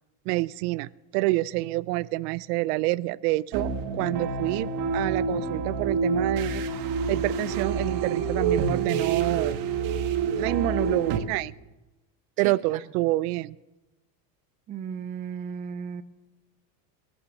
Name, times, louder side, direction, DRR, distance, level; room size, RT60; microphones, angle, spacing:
voice 1, 0.3-6.7 7.1-9.6 10.4-11.5 12.4-13.6, right 19 dB, 65° right, 19 dB, 0.6 m, -27 dB
sound 1, 3.5-11.2, right 5 dB, 40° right, 1.4 m, -27 dB
voice 2, 14.7-16.0, right 7 dB, 20° right, 12 dB, 0.4 m, -35 dB
21.5 x 8.8 x 6.6 m, 1.1 s
supercardioid pair, 145°, 50 cm